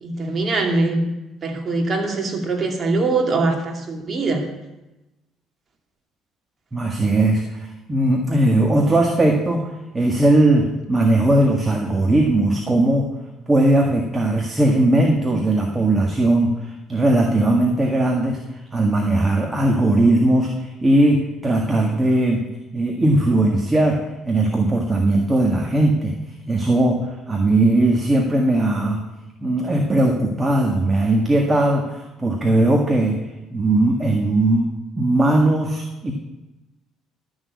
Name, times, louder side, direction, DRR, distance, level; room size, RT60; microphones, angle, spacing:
voice 1, 0.0-1.1 1.4-4.5, right 3 dB, 35° right, 2 dB, 2.6 m, -22 dB
voice 2, 6.7-9.7 9.9-13.1 13.5-18.4 18.7-22.4 22.7-24.0 24.2-26.1 26.5-27.0 27.3-29.0 29.4-33.2 33.5-34.7 35.0-36.1, right 1 dB, 20° right, 1 dB, 1.7 m, -18 dB
12.5 x 6.4 x 8.3 m, 1.0 s
cardioid pair, 105°, 0 cm